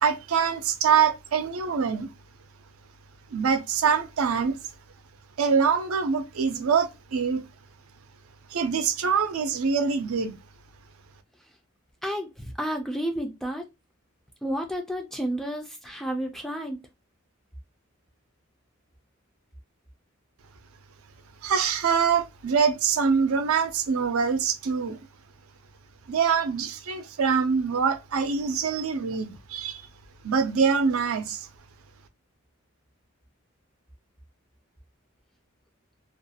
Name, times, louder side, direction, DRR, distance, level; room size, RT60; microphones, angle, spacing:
voice 1, 0.0-2.1 3.3-4.6 5.4-7.4 8.5-10.4 21.4-25.0 26.1-29.8 30.2-31.5, right 6 dB, 80° right, 0.5 m, -24 dB
voice 2, 12.0-13.6 14.4-16.8, equal, ahead, 0.3 m, -31 dB
2.4 x 2.2 x 2.7 m
head